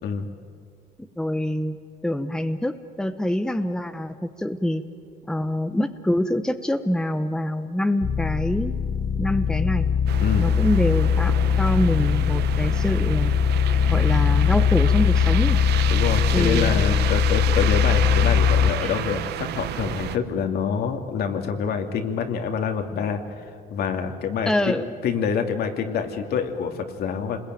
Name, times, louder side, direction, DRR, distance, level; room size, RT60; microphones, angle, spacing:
voice 1, 1.2-1.8 2.0-4.9 5.3-8.7 9.2-9.9 10.4-13.3 13.9-15.6 16.3-16.8 18.8-18.9 24.5-24.8, left 1 dB, 5° left, 9 dB, 1.0 m, -25 dB
sound 1, 8.0-18.7, left 7 dB, 50° left, 1.2 m, -21 dB
sound 2, 10.1-20.2, right 12 dB, 75° right, 1.0 m, -31 dB
voice 2, 15.9-24.7 25.0-27.4, left 6 dB, 70° left, 5 dB, 2.6 m, -26 dB
28.0 x 21.0 x 9.3 m, 2.2 s
cardioid pair, 110°, 17 cm